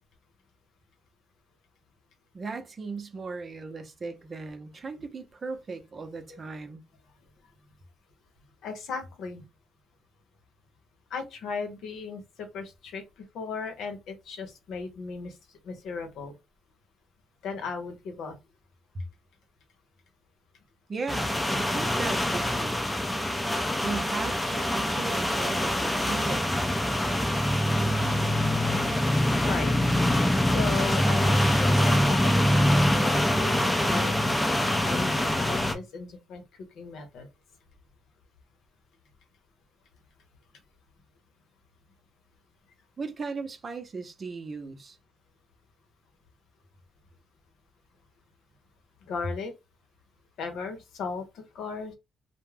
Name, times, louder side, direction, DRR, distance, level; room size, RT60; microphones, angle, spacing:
voice 1, 2.3-6.8 20.9-22.8 23.8-26.6 43.0-45.0, right 4 dB, 40° right, 0.6 m, -37 dB
voice 2, 8.6-9.4 11.1-13.0 13.3-15.3 15.6-16.3 17.4-18.3 29.4-29.7 30.5-33.6 33.9-34.1 34.8-37.3 49.1-49.5 50.4-51.9, left 5 dB, 80° left, 0.8 m, -36 dB
sound 1, 21.1-35.7, left 1 dB, 10° left, 0.5 m, -24 dB
2.3 x 2.1 x 3.2 m
cardioid pair, 90°, 0 cm